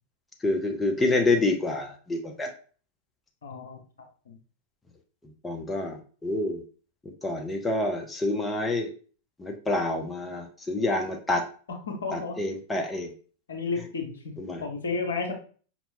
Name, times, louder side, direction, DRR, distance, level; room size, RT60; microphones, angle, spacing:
voice 1, 0.4-2.5 5.4-6.6 7.2-8.9 9.4-11.4 12.1-13.1 14.4-14.6, left 2 dB, 15° left, 1 dB, 0.7 m, -27 dB
voice 2, 3.4-3.8 4.3-4.4 11.9-12.3 13.5-14.3 14.6-15.3, left 4 dB, 70° left, 3 dB, 0.9 m, -32 dB
5.4 x 2.9 x 2.7 m, 0.40 s
figure-of-eight pair, 90°, 0 cm